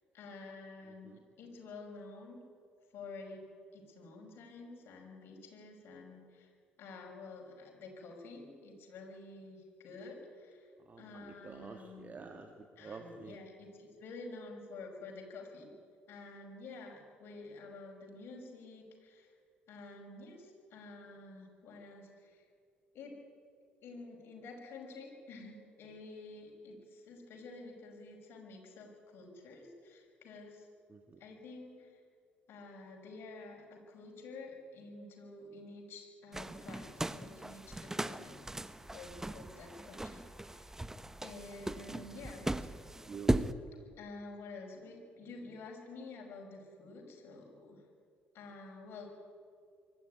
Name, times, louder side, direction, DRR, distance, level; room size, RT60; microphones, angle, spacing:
voice 1, 0.1-2.4 2.9-6.5 6.8-10.7 11.0-12.3 12.8-15.7 16.1-19.3 19.7-22.4 22.9-23.2 23.8-30.7 31.2-32.0 32.5-38.5 38.9-40.8 41.2-42.7 44.0-47.8 48.3-49.1, left 3 dB, 55° left, 1 dB, 5.9 m, -50 dB
voice 2, 10.8-13.4 30.9-31.2 43.1-43.5, right 5 dB, 35° right, 4 dB, 2.0 m, -48 dB
sound 1, 36.3-43.5, right 1 dB, 10° right, 0.9 m, -38 dB
24.0 x 13.0 x 9.5 m, 2.2 s
hypercardioid pair, 50°, 5 cm